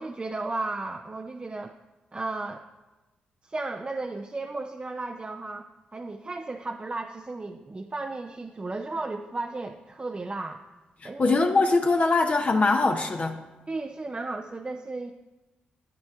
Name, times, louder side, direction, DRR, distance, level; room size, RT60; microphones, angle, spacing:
voice 1, 0.0-1.7 2.1-2.6 3.4-10.6 11.0-11.4 13.7-15.1, right 3 dB, 30° right, 4 dB, 0.5 m, -34 dB
voice 2, 11.0-13.4, left 3 dB, 40° left, 4 dB, 0.7 m, -22 dB
9.2 x 8.9 x 3.6 m, 1.1 s
supercardioid pair, 55°, 3 cm